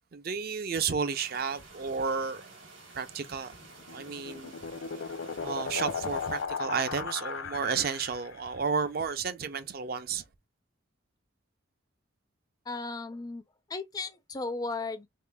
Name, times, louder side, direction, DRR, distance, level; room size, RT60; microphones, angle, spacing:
voice 1, 0.1-2.5 2.9-3.6 3.9-4.5 5.4-10.2, right 5 dB, 45° right, 0.4 m, -32 dB
sound 1, 1.1-6.5, right 3 dB, 70° right, 1.7 m, -51 dB
sound 2, 3.6-8.4, left 6 dB, 75° left, 0.5 m, -36 dB
voice 2, 12.7-13.4 13.7-15.1, left 3 dB, 20° left, 0.4 m, -35 dB
3.6 x 3.2 x 2.2 m
head